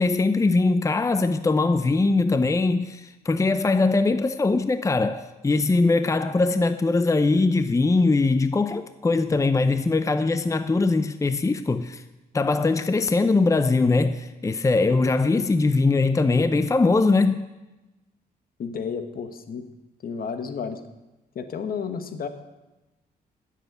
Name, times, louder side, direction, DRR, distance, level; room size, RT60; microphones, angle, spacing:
voice 1, 0.0-12.0 12.3-17.4, left 3 dB, 20° left, 0.6 m, -21 dB
voice 2, 18.6-19.7 20.0-20.8 21.3-22.3, left 6 dB, 60° left, 1.3 m, -31 dB
10.5 x 7.5 x 9.1 m
cardioid pair, 75°, 17 cm